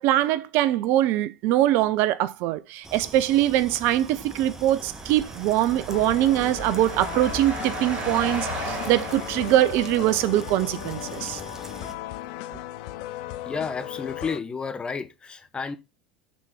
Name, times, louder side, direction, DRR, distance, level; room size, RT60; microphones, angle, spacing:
voice 1, 0.0-11.4, right 14 dB, 60° right, 0.5 m, -23 dB
sound 1, 2.8-11.9, right 2 dB, 10° right, 1.1 m, -42 dB
sound 2, 4.0-10.3, right 2 dB, 45° right, 3.7 m, -36 dB
sound 3, 5.9-14.4, left 14 dB, 65° left, 0.6 m, -36 dB
voice 2, 13.4-15.8, left 5 dB, 25° left, 1.2 m, -31 dB
6.3 x 4.1 x 5.3 m
hypercardioid pair, 75°, 4 cm